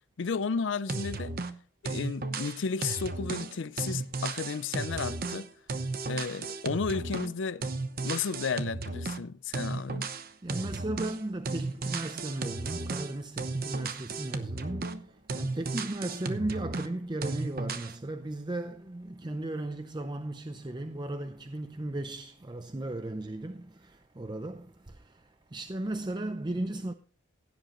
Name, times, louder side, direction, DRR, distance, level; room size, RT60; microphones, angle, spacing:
voice 1, 0.2-1.3 1.8-5.5 6.1-7.6 8.0-10.1, left 5 dB, 75° left, 0.5 m, -33 dB
sound 1, 0.9-1.6 1.9-7.4 7.6-9.2 9.5-11.2 11.5-15.0 15.3-16.9 17.2-17.9, right 3 dB, 50° right, 0.9 m, -34 dB
voice 2, 10.4-26.9, right 1 dB, 25° right, 0.5 m, -36 dB
16.0 x 10.0 x 3.0 m
head